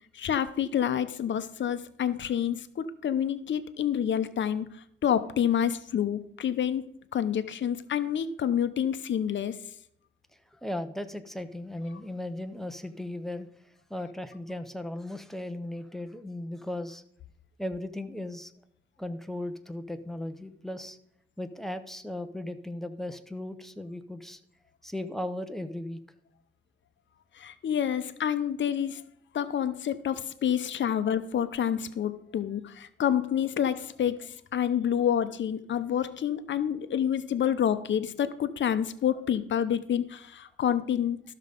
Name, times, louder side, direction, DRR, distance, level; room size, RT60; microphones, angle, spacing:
voice 1, 0.1-4.7 5.0-6.9 7.1-9.6 27.4-29.0 29.3-41.2, left 9 dB, 65° left, 11 dB, 0.7 m, -28 dB
voice 2, 10.5-13.5 13.9-17.0 17.6-18.5 19.0-21.0 21.4-24.4 24.8-26.0, left 1 dB, ahead, 9 dB, 0.6 m, -36 dB
12.5 x 6.6 x 5.1 m, 0.70 s
wide cardioid pair, 155°, 21 cm